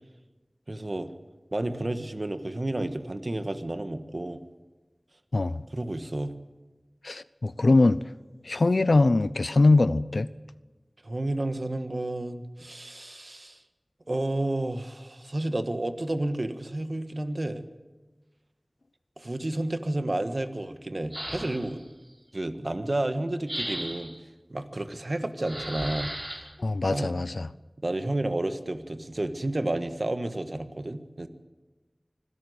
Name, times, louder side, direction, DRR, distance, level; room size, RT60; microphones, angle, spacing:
voice 1, 0.7-1.1 1.5-4.4 5.7-6.4 11.0-13.6 14.1-17.6 19.2-21.8 22.3-24.1 24.5-26.1 26.9-27.1 27.8-31.3, right 1 dB, 55° right, 9 dB, 1.6 m, -31 dB
voice 2, 7.0-8.0 8.4-10.3 26.6-27.5, left 2 dB, 80° left, 16 dB, 0.6 m, -22 dB
sound 1, 21.1-21.8 23.5-24.2 25.4-26.4, right 1 dB, 35° right, 5.7 m, -35 dB
25.0 x 16.5 x 8.1 m, 1.2 s
wide cardioid pair, 50°, 0 cm